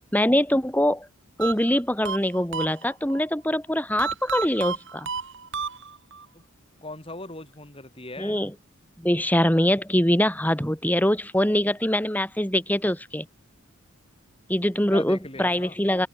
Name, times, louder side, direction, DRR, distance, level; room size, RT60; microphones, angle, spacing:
voice 1, 0.1-1.1 1.4-5.1 8.2-8.5 9.0-13.3 14.5-16.1, left 1 dB, 10° left, 3.7 m, -23 dB
sound 1, 1.4-3.2 4.0-6.3, right 5 dB, 60° right, 3.1 m, -32 dB
voice 2, 6.8-8.4 14.9-15.8, left 2 dB, 25° left, 7.9 m, -38 dB
open air
head